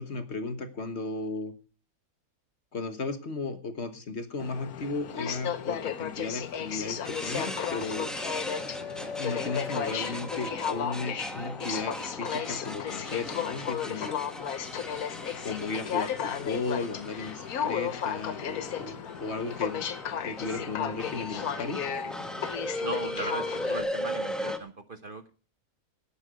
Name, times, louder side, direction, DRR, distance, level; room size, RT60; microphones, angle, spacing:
voice 1, 0.0-1.5 2.7-8.1 9.2-14.3 15.4-19.9 20.2-21.8, left 3 dB, 50° left, 8 dB, 1.5 m, -35 dB
Aircraft, 4.4-23.8, left 8 dB, 85° left, 1.4 m, -34 dB
sound 1, 7.0-24.6, left 1 dB, ahead, 1.2 m, -38 dB
voice 2, 22.8-25.3, right 3 dB, 40° right, 9 dB, 1.0 m, -37 dB
18.0 x 8.6 x 5.0 m, 0.39 s
omnidirectional pair, 1.5 m